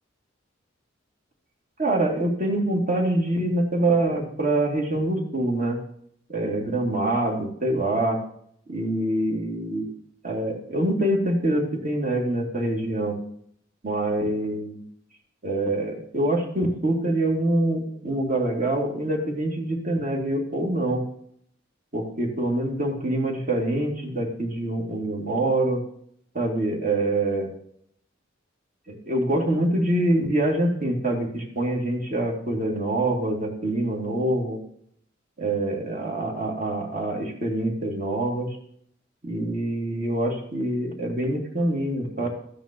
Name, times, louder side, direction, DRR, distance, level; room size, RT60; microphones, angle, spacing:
voice 1, 1.8-5.8 6.3-8.2 8.7-9.9 10.2-13.2 13.8-14.7 15.4-21.0 21.9-25.8 26.3-27.5 28.9-34.6 35.4-38.5 39.2-42.3, right 1 dB, 40° right, 0 dB, 2.5 m, -25 dB
13.5 x 9.3 x 3.0 m, 0.67 s
head